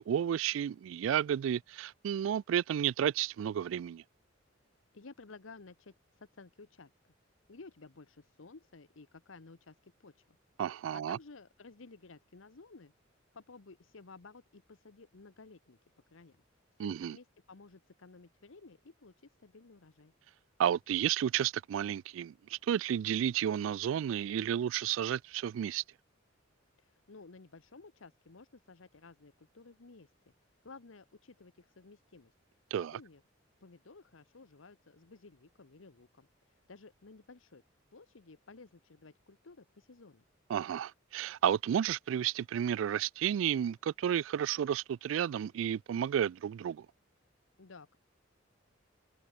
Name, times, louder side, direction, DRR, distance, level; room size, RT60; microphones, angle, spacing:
voice 1, 0.0-4.0 10.6-11.2 16.8-17.2 20.6-25.8 32.7-33.0 40.5-46.9, right 9 dB, 80° right, 0.3 m, -32 dB
voice 2, 4.9-7.1 7.5-10.4 10.9-12.9 13.3-15.8 16.1-16.4 16.8-20.1 26.8-30.3 30.6-33.2 33.6-37.6 37.9-40.2 47.6-48.0, left 3 dB, 90° left, 1.0 m, -55 dB
head